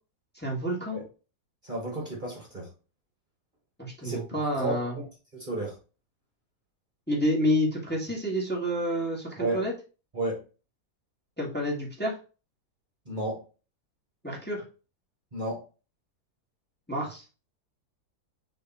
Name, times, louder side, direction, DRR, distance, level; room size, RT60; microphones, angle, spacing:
voice 1, 0.4-1.0 3.8-5.0 7.1-9.7 11.4-12.2 14.2-14.6 16.9-17.2, equal, 5° left, -3 dB, 1.9 m, -29 dB
voice 2, 1.6-2.7 4.0-4.2 4.6-5.1 5.3-5.8 9.4-9.6 10.1-10.4 13.0-13.4 15.3-15.6, right 2 dB, 30° right, -2 dB, 1.8 m, -32 dB
6.6 x 3.5 x 4.3 m, 0.33 s
omnidirectional pair, 1.7 m